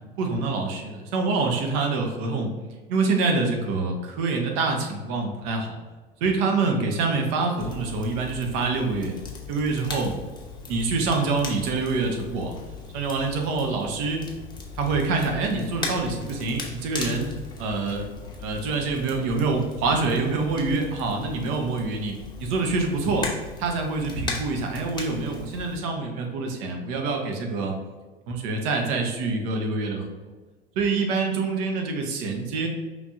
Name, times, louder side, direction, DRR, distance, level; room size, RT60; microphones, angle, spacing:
voice 1, 0.2-2.5 2.9-5.8 6.2-9.1 9.5-10.1 10.7-12.5 12.9-14.2 14.8-17.3 17.6-18.0 18.4-23.3 23.6-27.7 28.3-30.1 30.8-32.7, right 3 dB, 45° right, 2 dB, 0.9 m, -26 dB
Crackle, 7.6-25.8, left 4 dB, 15° left, 0.8 m, -38 dB
5.0 x 3.2 x 2.6 m, 1.3 s
figure-of-eight pair, 80°, 30 cm